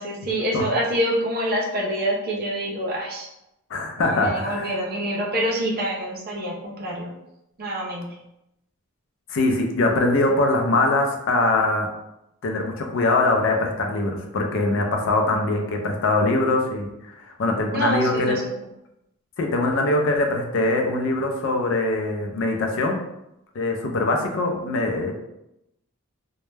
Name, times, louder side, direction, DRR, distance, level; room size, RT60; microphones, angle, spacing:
voice 1, 0.0-3.3 4.0-7.1 7.6-8.1 17.7-18.4, right 1 dB, 45° right, -2 dB, 0.5 m, -26 dB
voice 2, 3.7-4.7 9.3-11.9 12.4-18.4 19.4-23.0 23.5-25.1, left 2 dB, 55° left, 2 dB, 0.4 m, -22 dB
2.2 x 2.0 x 3.1 m, 0.85 s
head